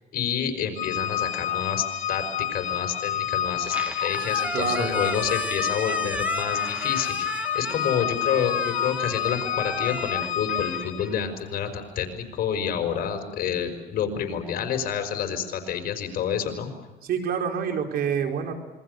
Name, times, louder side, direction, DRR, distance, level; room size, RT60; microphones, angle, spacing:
voice 1, 0.1-2.2 2.5-16.7, left 8 dB, 60° left, 6 dB, 5.5 m, -29 dB
Organ, 0.7-11.2, left 10 dB, 45° left, 3.6 m, -29 dB
Squeak, 3.5-11.8, right 1 dB, 10° right, 1.3 m, -35 dB
voice 2, 4.5-5.3 17.0-18.5, right 7 dB, 65° right, 3 dB, 5.0 m, -27 dB
28.0 x 23.5 x 6.8 m, 1.1 s
cardioid pair, 110°, 17 cm